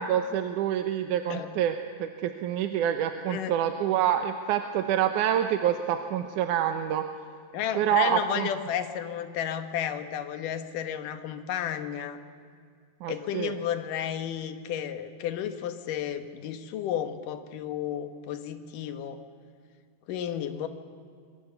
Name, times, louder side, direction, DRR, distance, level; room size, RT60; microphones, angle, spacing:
voice 1, 0.0-1.7 2.0-7.1 7.7-8.5 13.0-13.5, right 10 dB, 75° right, 7 dB, 2.2 m, -27 dB
voice 2, 7.5-12.2 13.1-19.2 20.1-20.7, left 9 dB, 70° left, 8 dB, 2.8 m, -32 dB
28.0 x 23.5 x 7.0 m, 2.2 s
omnidirectional pair, 4.0 m